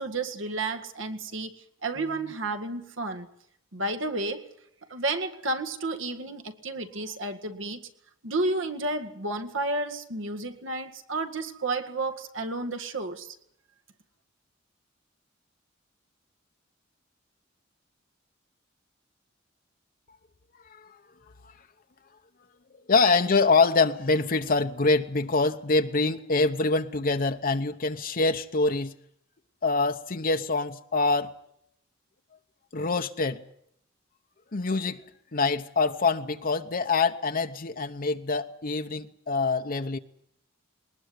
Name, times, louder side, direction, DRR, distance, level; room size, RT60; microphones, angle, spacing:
voice 1, 0.0-1.5 1.8-3.3 3.7-4.5 4.9-7.8 8.2-13.4, right 2 dB, 75° right, 1.9 m, -31 dB
voice 2, 22.9-28.9 29.6-31.3 32.7-33.4 34.5-35.0 35.3-40.0, left 3 dB, 45° left, 0.9 m, -25 dB
21.0 x 19.5 x 9.4 m
head